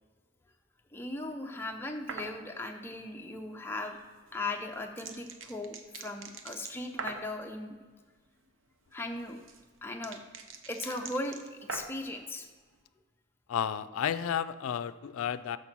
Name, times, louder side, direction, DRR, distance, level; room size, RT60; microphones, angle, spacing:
voice 1, 0.9-4.0 4.3-7.8 8.9-9.4 9.8-10.2 10.7-12.5, left 2 dB, 10° left, 2 dB, 0.6 m, -38 dB
sound 1, 2.1-2.4 4.3-7.3 8.9-12.1, right 4 dB, 70° right, 0.7 m, -43 dB
voice 2, 13.5-15.6, left 8 dB, 90° left, 13 dB, 0.3 m, -32 dB
6.5 x 5.5 x 6.0 m, 1.4 s
head